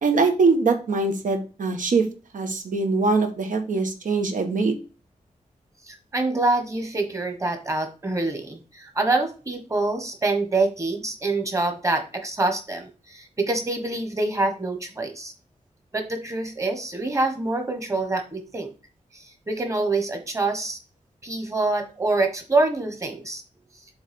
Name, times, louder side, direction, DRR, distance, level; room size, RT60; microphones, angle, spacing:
voice 1, 0.0-2.0 2.3-4.8, right 4 dB, 85° right, 5 dB, 1.3 m, -22 dB
voice 2, 5.8-15.3 15.9-18.7 19.1-20.8 21.2-23.4, right 2 dB, 25° right, 4 dB, 1.3 m, -26 dB
7.2 x 3.3 x 5.3 m, 0.34 s
wide cardioid pair, 155°, 13 cm